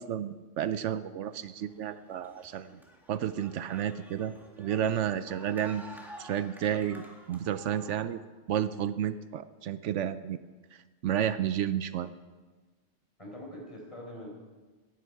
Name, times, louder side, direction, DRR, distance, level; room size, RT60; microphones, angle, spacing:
voice 1, 0.0-2.8 3.1-5.8 6.2-8.2 8.5-10.4 11.0-12.1, right 10 dB, 80° right, 13 dB, 0.9 m, -31 dB
sound 1, 1.3-8.0, equal, ahead, 2.1 m, -51 dB
voice 2, 13.2-14.3, equal, 25° left, -1 dB, 4.5 m, -44 dB
18.5 x 14.5 x 4.8 m, 1.3 s
omnidirectional pair, 1.2 m